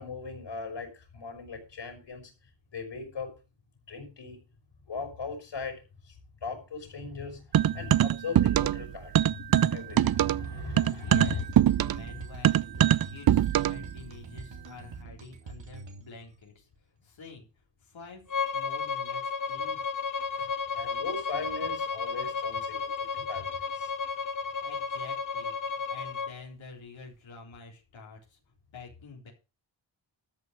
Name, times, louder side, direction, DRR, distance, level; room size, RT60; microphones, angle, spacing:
voice 1, 0.0-2.3 2.7-3.3 3.9-4.4 4.9-11.4 20.3-23.9, left 5 dB, 70° left, 5 dB, 5.9 m, -39 dB
sound 1, 7.5-8.9 9.1-13.9, right 11 dB, 55° right, 0.5 m, -23 dB
sound 2, 9.7-16.4, right 4 dB, 70° right, 2.7 m, -45 dB
voice 2, 11.0-11.5 11.8-16.7 17.0-17.5 17.8-18.2 18.5-19.9 24.6-28.4 28.7-29.3, left 4 dB, 85° left, -1 dB, 4.0 m, -48 dB
Bowed string instrument, 18.3-26.3, left 5 dB, 45° left, 1.5 m, -33 dB
13.5 x 5.4 x 7.4 m, 0.31 s
cardioid pair, 70°, 45 cm